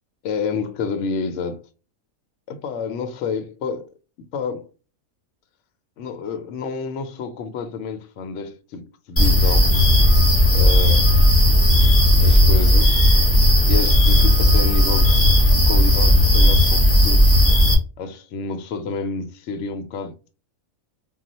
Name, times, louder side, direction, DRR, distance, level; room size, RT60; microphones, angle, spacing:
voice 1, 0.2-1.6 2.5-3.9 4.3-4.7 6.0-9.7 10.5-11.1 11.8-13.0 13.7-17.3 18.0-20.3, left 5 dB, 65° left, 0.8 m, -29 dB
sound 1, 9.2-17.7, left 1 dB, 15° left, 0.6 m, -15 dB
2.3 x 2.1 x 3.9 m
omnidirectional pair, 1.5 m